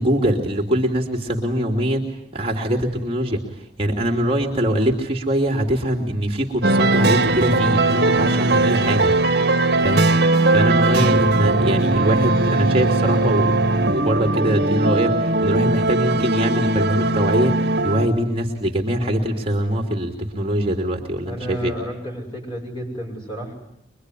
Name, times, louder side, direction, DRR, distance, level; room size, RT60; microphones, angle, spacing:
voice 1, 0.0-9.1 9.8-10.1 10.5-21.7, right 1 dB, 30° right, 1 dB, 2.9 m, -23 dB
sound 1, 6.6-18.1, right 2 dB, 60° right, 2.1 m, -19 dB
voice 2, 21.2-23.5, equal, 30° left, 0 dB, 7.8 m, -31 dB
24.0 x 23.5 x 9.9 m, 0.73 s
head